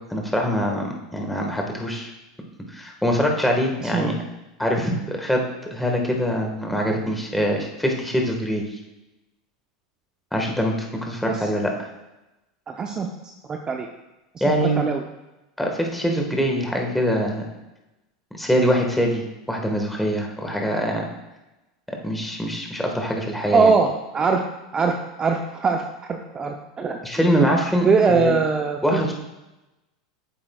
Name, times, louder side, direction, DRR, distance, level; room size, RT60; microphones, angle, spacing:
voice 1, 0.1-2.1 2.7-4.1 4.6-5.4 5.7-8.6 10.3-10.7 11.0-11.9 14.4-14.9 15.6-17.4 18.3-21.1 22.0-23.7 27.0-28.3 28.8-29.1, equal, 5° left, 1 dB, 1.6 m, -23 dB
voice 2, 3.8-4.1 11.3-11.5 12.7-13.1 13.5-13.9 14.3-15.0 23.5-24.4 24.7-25.8 26.1-27.0 27.8-29.1, right 4 dB, 25° right, 3 dB, 0.6 m, -22 dB
8.9 x 7.4 x 2.4 m, 1.0 s
hypercardioid pair, 95°, 3 cm